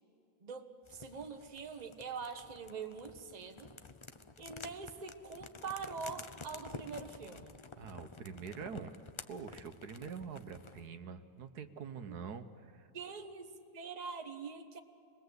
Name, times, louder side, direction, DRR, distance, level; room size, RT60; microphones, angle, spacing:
voice 1, 0.4-3.7 4.4-7.5 12.1-12.2 12.9-14.8, right 5 dB, 30° right, 6 dB, 1.2 m, -44 dB
sound 1, 0.8-10.9, left 4 dB, 50° left, 0.3 m, -51 dB
voice 2, 7.8-8.9 9.3-12.9, right 6 dB, 75° right, 8 dB, 1.4 m, -45 dB
27.5 x 20.5 x 8.0 m, 2.6 s
omnidirectional pair, 1.7 m